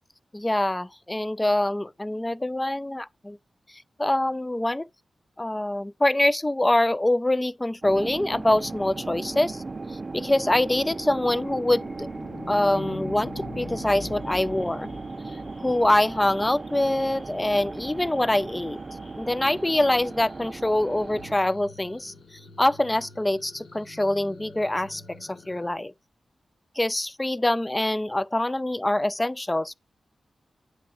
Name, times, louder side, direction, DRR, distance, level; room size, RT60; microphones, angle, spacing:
voice 1, 0.3-3.4 3.7-4.9 5.4-9.6 9.9-12.1 12.5-14.9 15.6-18.8 19.2-25.9 26.8-29.7, left 1 dB, 15° left, 0.4 m, -25 dB
sound 1, 7.8-21.3, right 3 dB, 40° right, 0.4 m, -37 dB
sound 2, 10.5-25.7, left 3 dB, 75° left, 1.4 m, -51 dB
sound 3, 11.5-16.0, left 3 dB, 60° left, 1.2 m, -40 dB
9.1 x 3.6 x 5.9 m
cardioid pair, 70°, 0 cm